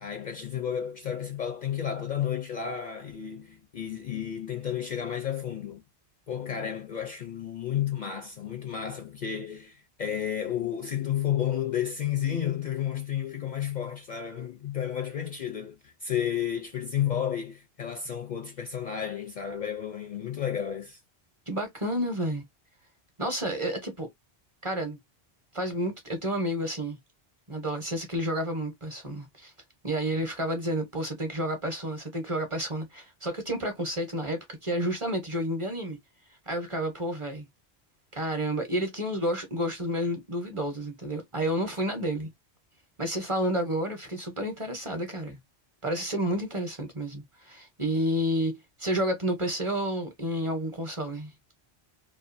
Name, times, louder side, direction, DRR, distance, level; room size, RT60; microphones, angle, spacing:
voice 1, 0.0-5.8 6.3-21.0, left 9 dB, 55° left, 0.5 m, -32 dB
voice 2, 21.5-22.4 23.2-24.1 24.6-25.0 25.5-27.0 27.5-29.5 29.8-36.0 36.5-37.5 38.1-42.3 43.0-45.4 45.8-51.3, equal, 30° right, 0.8 m, -30 dB
2.5 x 2.5 x 2.5 m
omnidirectional pair, 1.1 m